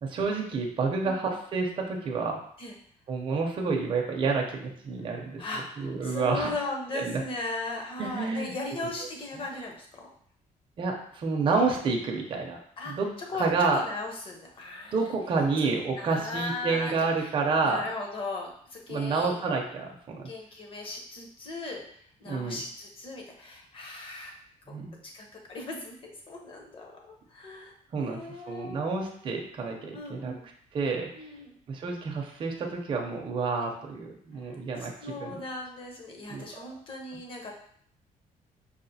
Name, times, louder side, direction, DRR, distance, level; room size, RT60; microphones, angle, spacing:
voice 1, 0.0-2.4 3.1-6.5 6.9-7.2 8.0-8.9 10.8-12.6 12.9-13.1 13.4-13.8 14.9-17.8 18.9-20.3 22.3-22.6 24.7-25.0 27.9-28.2 28.5-30.3 30.7-31.1 31.7-35.4 36.3-36.4, right 4 dB, 35° right, 1 dB, 0.5 m, -29 dB
voice 2, 5.1-10.1 12.8-12.9 13.3-15.0 15.6-15.7 16.0-17.3 17.6-19.4 20.2-21.8 22.2-24.4 25.1-26.9 27.3-29.3 29.9-30.4 31.1-31.6 34.4-37.5, left 2 dB, 35° left, 1 dB, 0.7 m, -38 dB
4.8 x 2.4 x 2.7 m, 0.63 s
cardioid pair, 165°, 15 cm